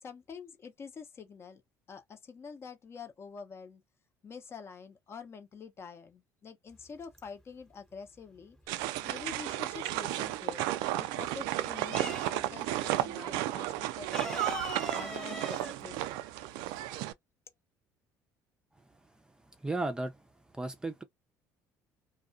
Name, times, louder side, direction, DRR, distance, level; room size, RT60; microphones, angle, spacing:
voice 1, 0.0-1.6 1.9-3.8 4.2-8.6 9.0-10.7 10.9-14.5 14.9-16.1, left 6 dB, 35° left, 0.7 m, -47 dB
sound 1, 6.7-7.6 7.9-9.9 10.3-12.7 12.9-13.1 13.3-16.9, left 1 dB, 5° left, 1.0 m, -42 dB
sound 2, 8.7-17.1, right 14 dB, 85° right, 0.3 m, -33 dB
voice 2, 19.6-20.1 20.5-21.0, right 2 dB, 10° right, 0.5 m, -34 dB
2.4 x 2.3 x 2.4 m
supercardioid pair, 100°, 7 cm